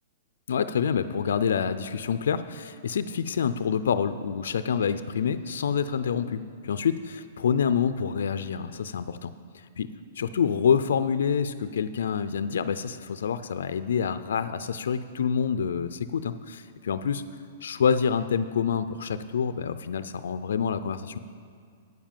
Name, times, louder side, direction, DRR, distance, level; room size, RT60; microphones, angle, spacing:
voice 1, 0.5-9.3 9.8-9.9 10.2-17.2 17.6-21.2, left 7 dB, 85° left, 12 dB, 0.4 m, -27 dB
9.5 x 7.3 x 7.3 m, 2.1 s
hypercardioid pair, 160°, 0 cm